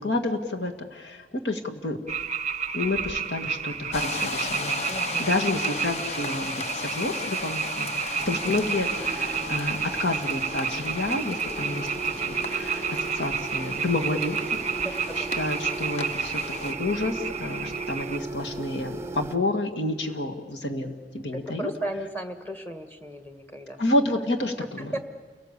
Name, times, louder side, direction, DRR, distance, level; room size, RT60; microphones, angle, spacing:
voice 1, 0.0-2.0 2.7-4.7 5.2-11.9 12.2-14.4 15.2-21.7 23.8-25.0, left 2 dB, 80° left, 4 dB, 2.0 m, -29 dB
sound 1, 2.1-18.2, right 6 dB, 40° right, 0.6 m, -31 dB
sound 2, 3.9-16.7, left 3 dB, 40° left, 1.0 m, -36 dB
voice 2, 4.9-5.3 14.8-15.3 21.3-23.8 24.8-25.0, right 1 dB, 10° left, 7 dB, 1.6 m, -35 dB
sound 3, 8.2-19.4, right 3 dB, 15° right, 1.0 m, -37 dB
29.0 x 18.0 x 8.3 m, 1.4 s
head